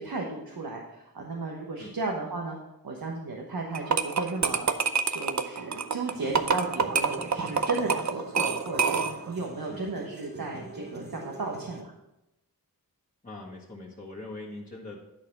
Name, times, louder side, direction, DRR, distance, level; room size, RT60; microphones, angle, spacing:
voice 1, 0.0-2.6 2.8-4.7 5.1-11.9, right 3 dB, 70° right, -1 dB, 1.3 m, -34 dB
sound 1, 3.7-9.3, right 5 dB, 50° right, 0.6 m, -27 dB
sound 2, 6.1-11.8, right 2 dB, 25° right, 1.2 m, -44 dB
voice 2, 13.2-15.0, left 2 dB, 20° left, -5 dB, 1.7 m, -42 dB
10.5 x 4.2 x 5.3 m, 0.88 s
cardioid pair, 45°, 37 cm